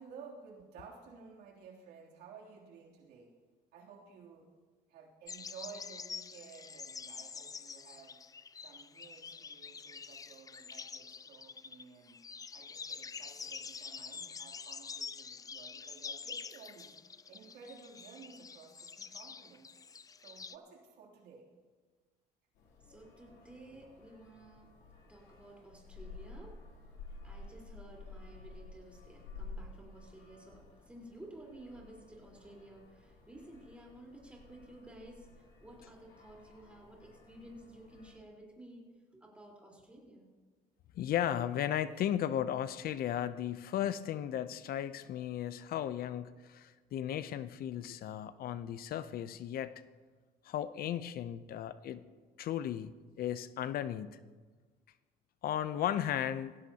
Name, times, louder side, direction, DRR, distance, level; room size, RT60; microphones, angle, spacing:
voice 1, 0.0-3.3 3.7-4.5 4.9-8.2 8.5-12.2 12.5-17.0 17.3-19.7 20.2-21.5, right 5 dB, 85° right, -3 dB, 3.0 m, -54 dB
sound 1, 5.3-20.6, left 5 dB, 20° left, 0.4 m, -46 dB
sound 2, 22.6-38.1, left 3 dB, 90° left, 3.1 m, -52 dB
voice 2, 22.8-24.7 25.1-26.6 27.2-35.3 35.6-38.9 39.1-40.3, right 1 dB, 5° right, -2 dB, 4.0 m, -53 dB
voice 3, 40.9-49.7 50.4-52.0 52.4-52.9 53.2-54.2 55.4-56.6, left 10 dB, 60° left, 14 dB, 0.6 m, -35 dB
17.5 x 16.0 x 2.9 m, 1.4 s
cardioid pair, 110°, 17 cm